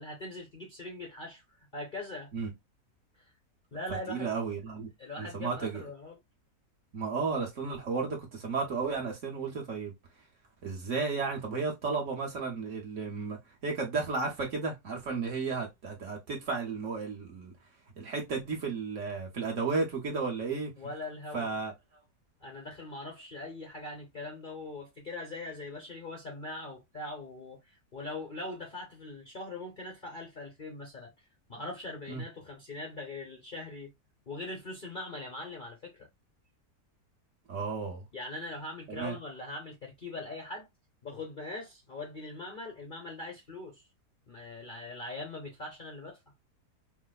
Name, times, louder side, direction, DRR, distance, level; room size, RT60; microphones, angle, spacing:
voice 1, 0.0-2.3 3.2-3.3 3.7-4.4 5.0-6.2 20.8-21.6 22.4-31.1 31.5-33.9 34.3-36.1 38.1-40.7 41.0-43.9 44.3-46.2, left 2 dB, 45° left, 0.7 m, -41 dB
voice 2, 3.9-4.9 5.2-5.8 6.9-9.9 10.6-13.4 13.6-17.5 18.0-20.7 21.3-21.7 32.1-32.2 37.5-38.1 38.9-39.2, right 4 dB, 55° right, 1.2 m, -33 dB
4.8 x 2.1 x 2.3 m
omnidirectional pair, 1.8 m